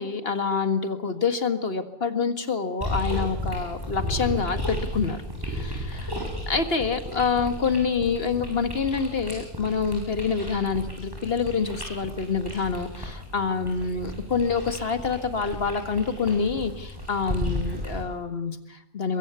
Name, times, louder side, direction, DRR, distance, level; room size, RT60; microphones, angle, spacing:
voice 1, 0.0-6.1 6.5-19.2, left 5 dB, 40° left, 8 dB, 1.8 m, -27 dB
sound 1, 2.8-18.0, left 1 dB, 15° right, 6.4 m, -34 dB
23.0 x 22.5 x 7.0 m, 0.93 s
omnidirectional pair, 1.7 m